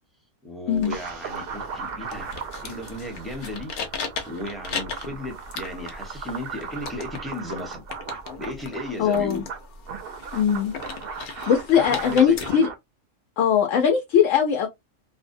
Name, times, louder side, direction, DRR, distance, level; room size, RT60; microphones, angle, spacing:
voice 1, 0.4-2.3 2.6-3.7 4.3-7.8 8.4-9.5 11.9-12.6, left 1 dB, ahead, 0.5 m, -35 dB
sound 1, 0.7-12.5, left 4 dB, 55° left, 0.6 m, -38 dB
sound 2, 0.9-12.7, right 5 dB, 60° right, 0.6 m, -37 dB
voice 2, 9.0-9.4 10.3-10.7 11.5-12.7 13.4-14.7, left 8 dB, 80° left, 0.9 m, -20 dB
2.6 x 2.0 x 2.5 m
omnidirectional pair, 1.3 m